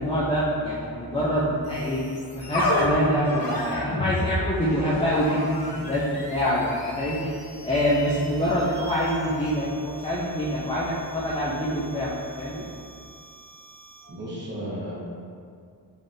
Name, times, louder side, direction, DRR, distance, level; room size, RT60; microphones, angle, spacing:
voice 1, 0.0-7.3 7.6-12.7, equal, 15° left, -8 dB, 0.4 m, -25 dB
sound 1, 1.6-14.1, left 1 dB, 60° left, 0.8 m, -33 dB
voice 2, 14.1-15.0, equal, 25° right, -7 dB, 1.0 m, -34 dB
3.9 x 3.4 x 2.6 m, 2.3 s
wide cardioid pair, 125°, 40 cm